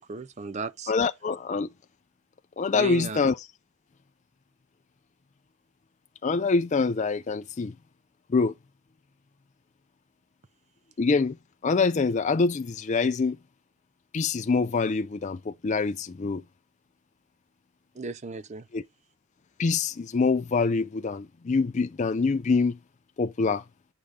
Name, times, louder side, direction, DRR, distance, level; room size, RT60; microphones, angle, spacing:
voice 1, 0.0-0.9 2.7-3.2 17.9-18.7, right 4 dB, 30° right, 0.5 m, -35 dB
voice 2, 0.9-1.7 2.6-3.4 6.2-7.7 8.3-8.5 11.0-11.4 11.6-13.4 14.1-16.4 18.7-18.8 19.6-22.8 23.2-23.6, left 4 dB, 35° left, 0.4 m, -25 dB
8.4 x 5.0 x 3.5 m
head